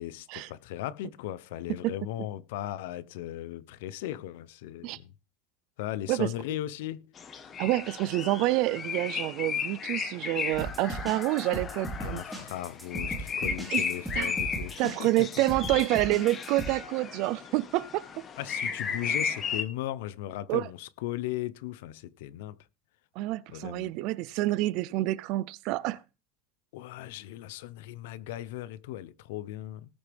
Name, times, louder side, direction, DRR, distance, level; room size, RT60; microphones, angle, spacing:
voice 1, 0.0-5.1 5.8-7.0 12.0-15.1 18.4-22.6 23.5-23.9 26.7-30.0, left 13 dB, 80° left, 0.7 m, -37 dB
sound 1, 7.2-19.6, left 6 dB, 25° left, 1.3 m, -35 dB
voice 2, 7.6-12.2 13.7-13.9 14.2-14.3 14.8-18.0 20.5-20.7 23.2-26.0, right 17 dB, 50° right, 0.6 m, -28 dB
sound 2, 10.5-16.7, right 2 dB, ahead, 2.6 m, -37 dB
19.5 x 6.7 x 3.5 m
cardioid pair, 170°, 0 cm